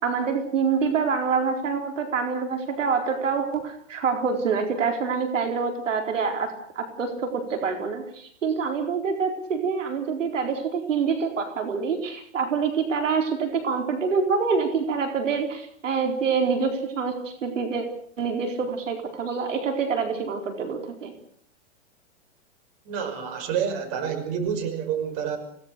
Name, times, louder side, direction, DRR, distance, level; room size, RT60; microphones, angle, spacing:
voice 1, 0.0-17.8 18.2-21.1, right 5 dB, 90° right, 5 dB, 4.3 m, -26 dB
voice 2, 22.8-25.4, right 7 dB, 45° right, 7 dB, 5.9 m, -28 dB
27.0 x 18.5 x 6.8 m, 0.63 s
hypercardioid pair, 125°, 37 cm